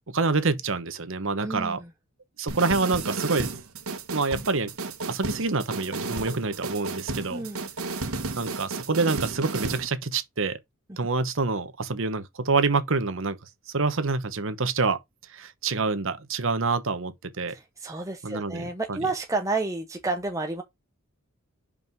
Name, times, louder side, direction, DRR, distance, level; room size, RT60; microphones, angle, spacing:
voice 1, 0.1-1.8 2.4-3.5 4.1-4.7 5.1-7.5 8.4-10.6 11.0-13.4 13.7-15.0 15.3-17.5 18.2-19.0, right 4 dB, 65° right, 1.0 m, -27 dB
voice 2, 1.4-1.9 7.3-7.7 17.5-20.6, right 3 dB, 15° right, 0.9 m, -31 dB
sound 1, 2.5-9.9, right 3 dB, 90° right, 1.4 m, -33 dB
5.5 x 5.1 x 4.6 m
head